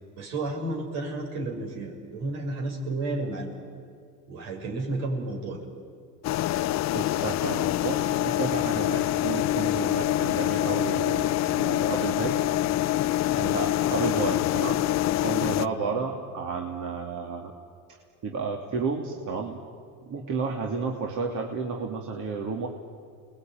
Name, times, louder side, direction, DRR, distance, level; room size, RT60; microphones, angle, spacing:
voice 1, 0.2-3.5 4.3-5.7 13.3-13.6 15.7-15.9, right 2 dB, 75° right, 0 dB, 6.9 m, -32 dB
sound 1, 6.2-15.7, left 14 dB, 45° left, 0.6 m, -25 dB
voice 2, 6.9-12.4 13.5-14.9 15.2-17.5 17.9-18.0 18.2-19.6 20.0-22.7, right 4 dB, 55° right, 1 dB, 2.9 m, -31 dB
29.5 x 21.0 x 9.4 m, 2.4 s
supercardioid pair, 105°, 37 cm